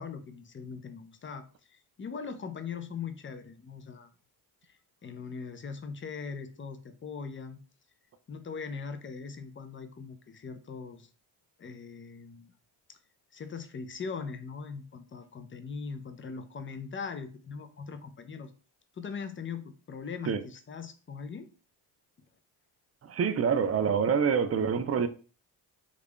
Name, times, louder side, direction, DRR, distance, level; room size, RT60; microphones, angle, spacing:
voice 1, 0.0-4.1 4.6-7.6 8.3-11.1 11.6-12.5 12.9-13.0 13.3-18.5 18.9-21.5, left 5 dB, 25° left, 0.5 m, -40 dB
voice 2, 23.0-25.1, right 6 dB, 35° right, 0.4 m, -26 dB
3.3 x 2.4 x 3.5 m
cardioid pair, 80°, 47 cm